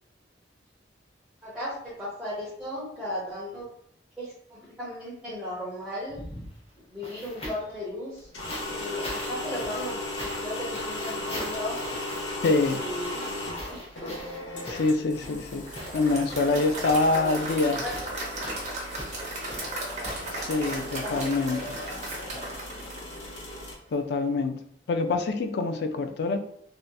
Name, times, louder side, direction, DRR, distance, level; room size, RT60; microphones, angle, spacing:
voice 1, 1.4-3.7 4.2-6.2 6.9-8.3 8.7-11.8 12.7-13.4 13.6-14.1 16.4-16.8 17.1-17.3 17.7-18.2 21.0-21.3, left 1 dB, 5° right, -10 dB, 0.9 m, -36 dB
sound 1, 6.1-7.8 8.5-23.0 24.1-24.2, equal, 35° left, 0.9 m, -42 dB
sound 2, 8.2-23.8, left 2 dB, 85° left, 0.8 m, -37 dB
voice 2, 12.4-12.8 14.7-15.6 15.9-17.8 20.3-21.8 23.9-24.6 24.9-26.4, left 3 dB, 65° left, 7 dB, 0.4 m, -25 dB
Applause / Crowd, 15.5-23.7, right 1 dB, 40° right, 0.8 m, -36 dB
3.2 x 2.8 x 2.3 m, 0.67 s
head